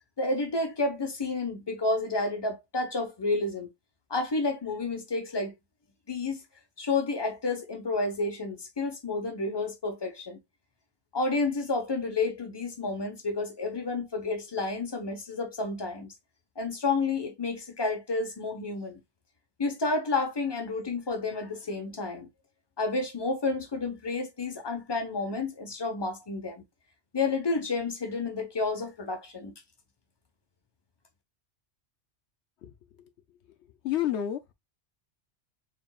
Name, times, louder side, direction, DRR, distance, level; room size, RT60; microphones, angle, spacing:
voice 1, 0.2-3.7 4.1-5.5 6.1-6.4 6.8-10.4 11.1-16.1 16.6-19.0 19.6-22.3 22.8-26.6 27.1-29.5, left 3 dB, 25° left, 1.0 m, -30 dB
voice 2, 33.8-34.5, left 11 dB, 80° left, 0.9 m, -30 dB
4.4 x 3.4 x 2.3 m
omnidirectional pair, 1.2 m